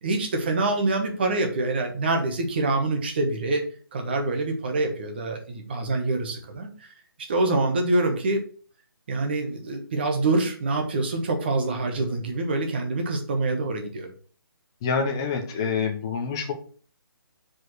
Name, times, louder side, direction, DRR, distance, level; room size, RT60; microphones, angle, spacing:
voice 1, 0.0-3.6 3.9-6.9 7.3-8.5 9.1-14.1, right 2 dB, 25° right, 4 dB, 1.2 m, -25 dB
voice 2, 14.8-16.5, left 5 dB, 10° left, 3 dB, 0.5 m, -26 dB
5.0 x 4.6 x 6.1 m, 0.42 s
hypercardioid pair, 175°, 12 cm